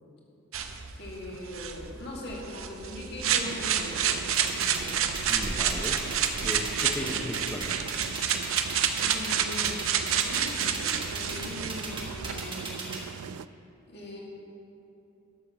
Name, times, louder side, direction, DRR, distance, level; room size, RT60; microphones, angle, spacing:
sound 1, 0.5-12.3, right 8 dB, 70° right, 0.7 m, -29 dB
voice 1, 1.0-4.2 4.6-5.1 5.4-5.7 9.0-12.9 13.9-14.2, left 1 dB, 50° left, -3 dB, 2.2 m, -41 dB
sound 2, 3.2-13.5, right 7 dB, 85° right, 0.3 m, -41 dB
sound 3, 4.3-13.0, right 4 dB, 25° right, 1.4 m, -36 dB
voice 2, 5.3-6.0 6.4-7.8, left 1 dB, 10° left, -2 dB, 0.6 m, -36 dB
12.0 x 7.2 x 5.9 m, 2.8 s
head